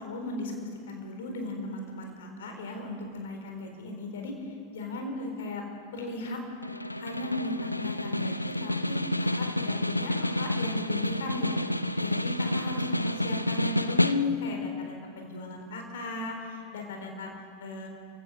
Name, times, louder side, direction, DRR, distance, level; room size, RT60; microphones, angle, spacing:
voice 1, 0.0-5.6 5.9-6.4 7.0-9.0 9.2-17.3 17.6-17.9, left 2 dB, 60° left, 3 dB, 4.1 m, -36 dB
Snare drum, 6.6-14.6, left 1 dB, 85° left, 0.6 m, -29 dB
28.5 x 16.0 x 6.4 m, 2.3 s
figure-of-eight pair, 90°, 0 cm